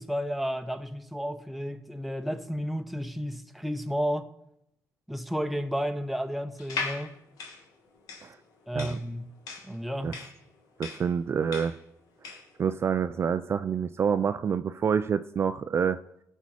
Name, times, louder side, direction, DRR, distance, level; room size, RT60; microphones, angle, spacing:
voice 1, 0.0-4.3 5.1-7.1 8.7-9.3 9.6-10.2, equal, ahead, 0.9 m, -32 dB
sound 1, 6.6-12.6, left 4 dB, 85° left, 1.6 m, -38 dB
voice 2, 10.8-11.8 12.6-16.0, right 7 dB, 45° right, 0.4 m, -27 dB
16.5 x 5.5 x 4.7 m
cardioid pair, 85°, 6 cm